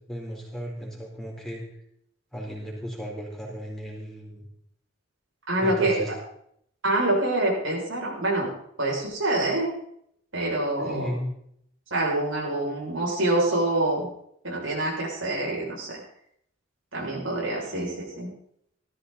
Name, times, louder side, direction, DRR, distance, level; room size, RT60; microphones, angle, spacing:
voice 1, 0.1-1.6 2.3-4.4 5.6-6.1 10.8-11.3, equal, ahead, -3 dB, 4.4 m, -35 dB
voice 2, 5.5-6.0 6.8-8.5 8.8-9.7 10.3-11.1 11.9-14.1 14.4-16.0 16.9-18.3, right 2 dB, 90° right, -3 dB, 7.1 m, -26 dB
17.5 x 13.5 x 4.3 m, 0.69 s
head